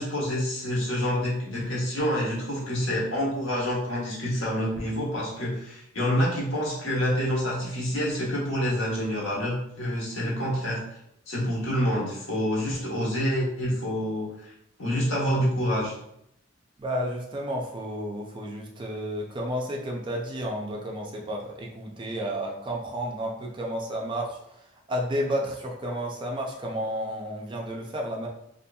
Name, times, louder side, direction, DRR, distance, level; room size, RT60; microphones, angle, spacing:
voice 1, 0.0-11.0 11.3-14.5 14.8-15.9, equal, 80° left, -6 dB, 1.1 m, -27 dB
voice 2, 16.8-28.3, equal, 25° right, 0 dB, 0.3 m, -32 dB
2.8 x 2.5 x 2.3 m, 0.77 s
head